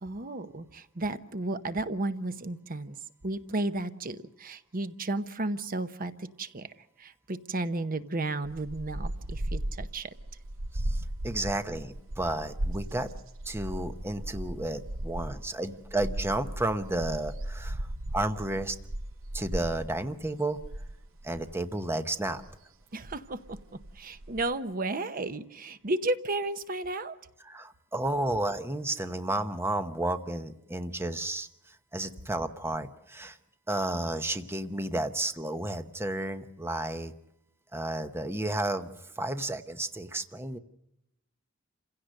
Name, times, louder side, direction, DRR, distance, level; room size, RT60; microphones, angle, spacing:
voice 1, 0.0-3.0 3.2-6.7 7.0-10.1 22.9-27.1, right 2 dB, 45° right, 11 dB, 0.9 m, -33 dB
sound 1, 8.4-21.8 22.4-22.5 22.8-24.5, right 1 dB, 80° right, 0.9 m, -37 dB
voice 2, 10.7-13.1 13.4-17.9 18.1-18.8 19.3-20.6 21.2-22.4 27.4-33.4 33.7-37.1 37.7-38.9 39.2-40.6, right 1 dB, 10° right, 9 dB, 0.9 m, -32 dB
28.0 x 16.5 x 6.6 m, 0.86 s
head